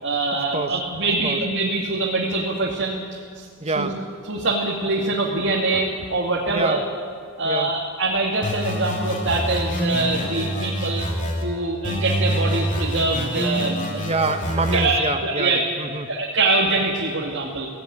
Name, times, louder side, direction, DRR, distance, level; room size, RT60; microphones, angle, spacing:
voice 1, 0.0-3.0 3.4-3.9 4.3-6.8 7.4-11.0 11.4-14.0 14.7-15.6 16.1-17.7, right 2 dB, 60° right, -3 dB, 2.4 m, -24 dB
voice 2, 3.6-4.0 6.5-6.8 7.4-7.7 14.0-16.1, right 3 dB, 30° right, 8 dB, 1.2 m, -26 dB
sound 1, 8.4-11.4 11.8-14.9, equal, 35° left, 3.3 m, -26 dB
17.0 x 17.0 x 9.7 m, 2.1 s
head